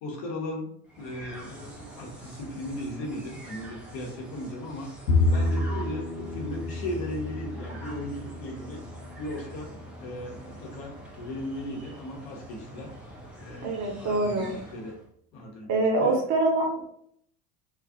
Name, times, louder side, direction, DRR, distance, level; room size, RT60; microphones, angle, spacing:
voice 1, 0.0-4.9 5.3-8.8 9.2-12.9 13.4-15.0 15.3-16.2, left 1 dB, 50° left, 0 dB, 1.0 m, -37 dB
sound 1, 0.8-15.1, right 1 dB, ahead, 0.4 m, -45 dB
Bowed string instrument, 5.1-11.4, left 2 dB, 85° left, 0.6 m, -30 dB
voice 2, 13.6-14.5 15.7-16.9, right 2 dB, 40° right, 1 dB, 0.8 m, -25 dB
2.4 x 2.4 x 2.4 m, 0.66 s
figure-of-eight pair, 75°, 48 cm